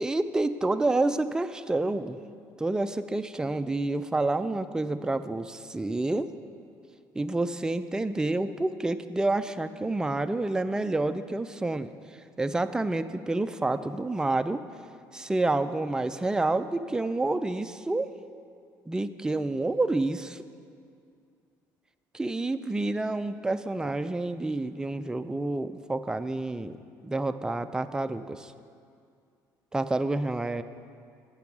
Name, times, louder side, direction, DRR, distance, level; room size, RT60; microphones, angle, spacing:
voice 1, 0.0-2.2 2.6-6.3 7.2-11.9 12.4-14.6 15.1-18.1 18.9-20.4 22.1-26.8 27.0-28.5 29.7-30.6, right 2 dB, 10° right, 10 dB, 0.3 m, -28 dB
8.2 x 6.1 x 5.9 m, 2.3 s
cardioid pair, 95°, 8 cm